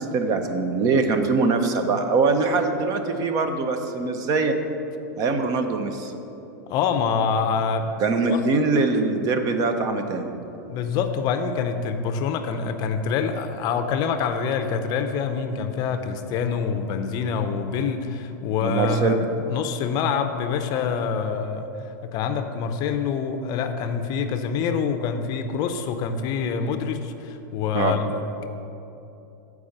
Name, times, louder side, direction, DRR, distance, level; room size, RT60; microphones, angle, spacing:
voice 1, 0.0-4.5 5.2-6.1 8.0-10.3 18.6-19.1 27.7-28.0, right 3 dB, 35° right, 7 dB, 0.7 m, -23 dB
voice 2, 6.7-7.9 8.3-8.4 10.7-21.7 22.1-28.4, left 6 dB, 40° left, 7 dB, 0.5 m, -26 dB
8.6 x 4.8 x 6.5 m, 2.9 s
supercardioid pair, 135°, 10 cm